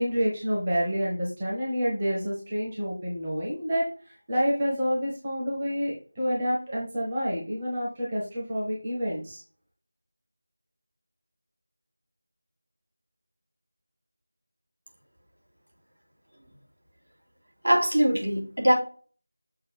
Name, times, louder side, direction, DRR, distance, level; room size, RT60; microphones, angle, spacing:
voice 1, 0.0-3.8 4.3-9.4, equal, 15° right, -5 dB, 1.0 m, -28 dB
voice 2, 17.6-18.7, equal, 85° right, -1 dB, 3.4 m, -22 dB
6.7 x 2.7 x 5.6 m, 0.40 s
figure-of-eight pair, 180°, 0 cm